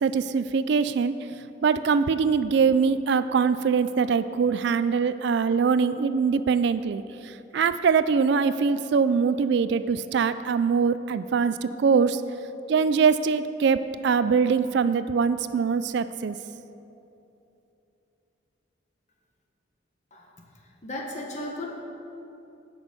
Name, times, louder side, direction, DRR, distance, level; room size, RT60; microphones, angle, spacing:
voice 1, 0.0-1.1 1.6-12.2 12.7-16.4, right 5 dB, 55° right, 13 dB, 0.3 m, -23 dB
voice 2, 20.6-21.8, left 1 dB, 35° left, 0 dB, 1.5 m, -35 dB
17.0 x 6.2 x 5.4 m, 2.9 s
head